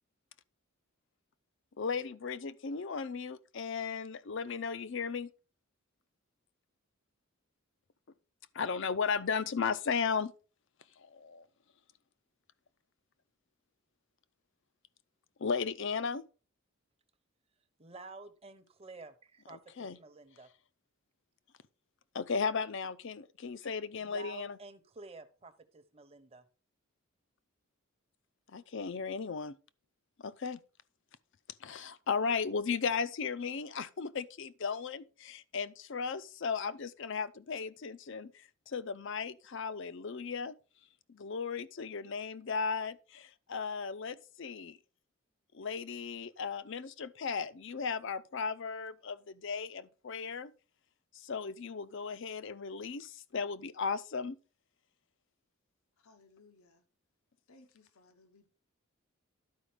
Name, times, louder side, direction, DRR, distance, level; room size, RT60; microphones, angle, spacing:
voice 1, 1.8-5.3 8.5-10.3 11.0-11.5 15.4-16.2 19.8-20.0 22.1-24.6 28.5-29.6 30.2-30.6 31.6-40.5 41.1-44.8 45.5-50.5 51.1-54.4, left 5 dB, 60° left, 0.5 m, -36 dB
voice 2, 17.8-20.5 23.6-23.7 24.0-26.5, right 3 dB, 30° right, 0.9 m, -51 dB
voice 3, 56.0-56.8 57.5-58.5, left 3 dB, 90° left, 1.1 m, -62 dB
11.5 x 5.1 x 5.0 m
head